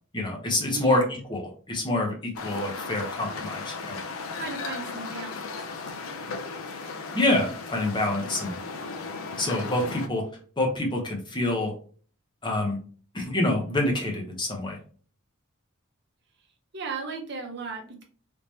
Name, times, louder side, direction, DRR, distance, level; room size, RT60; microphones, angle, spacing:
voice 1, 0.1-4.0 7.1-8.6 9.4-10.3 10.6-11.7 12.4-12.8 13.1-14.8, left 1 dB, 20° left, 1 dB, 0.7 m, -27 dB
voice 2, 0.7-1.1 4.3-5.7 16.7-18.0, right 4 dB, 50° right, 2 dB, 0.8 m, -36 dB
sound 1, 2.4-10.1, left 4 dB, 75° left, 0.5 m, -36 dB
3.4 x 2.8 x 2.9 m, 0.43 s
head